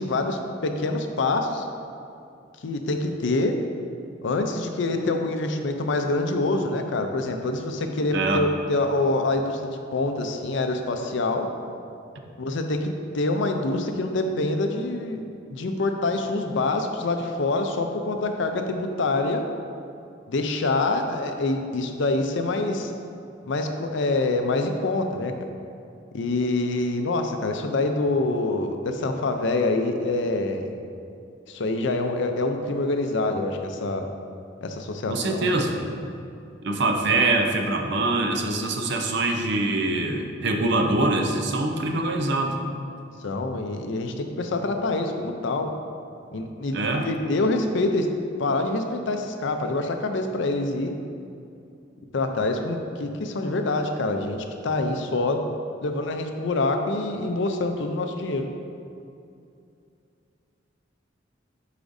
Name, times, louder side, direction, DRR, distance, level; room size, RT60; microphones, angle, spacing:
voice 1, 0.0-1.7 2.6-3.6 4.2-11.5 12.4-15.2 15.5-19.5 20.3-22.9 23.4-25.4 26.1-30.7 31.5-34.1 34.6-35.5 43.2-45.7 46.3-46.7 47.0-48.1 48.4-50.9 52.1-55.5 55.8-58.5, left 2 dB, 65° left, 5 dB, 0.5 m, -26 dB
voice 2, 8.1-8.5 35.1-35.8 36.6-42.6 46.7-47.1, right 2 dB, 60° right, 3 dB, 0.6 m, -24 dB
8.2 x 5.0 x 2.6 m, 2.5 s
head